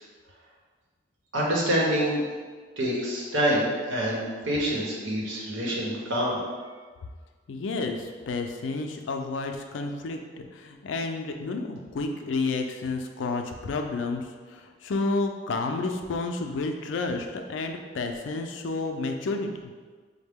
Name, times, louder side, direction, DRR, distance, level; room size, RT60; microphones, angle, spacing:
voice 1, 1.3-2.2 2.8-6.4, equal, 90° right, -4 dB, 1.0 m, -26 dB
voice 2, 7.5-19.7, left 3 dB, 80° left, 4 dB, 0.4 m, -31 dB
5.0 x 2.1 x 3.5 m, 1.5 s
head